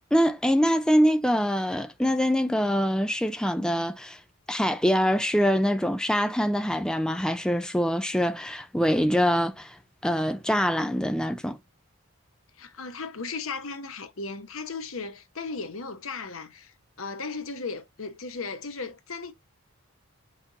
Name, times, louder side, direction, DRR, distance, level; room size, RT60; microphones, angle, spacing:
voice 1, 0.0-4.2 4.5-9.8 10.0-11.6, equal, 5° left, 0.5 m, -24 dB
voice 2, 12.6-19.3, left 4 dB, 70° left, 1.0 m, -36 dB
5.8 x 4.3 x 3.9 m
head